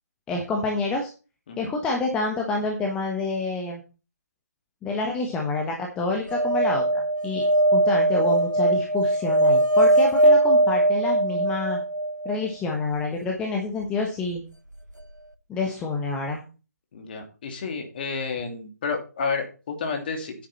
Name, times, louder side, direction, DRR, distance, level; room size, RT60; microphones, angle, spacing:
voice 1, 0.3-1.1 1.6-3.8 4.8-7.4 7.7-11.8 12.2-14.4 15.5-16.4, left 3 dB, 10° left, 1 dB, 1.3 m, -28 dB
sound 1, 6.3-12.4 14.7-14.8 15.0-15.1, right 1 dB, 90° right, 1.6 m, -20 dB
voice 2, 16.9-20.5, left 4 dB, 35° left, 3 dB, 2.9 m, -31 dB
9.7 x 9.2 x 4.3 m, 0.33 s
figure-of-eight pair, 145°, 9 cm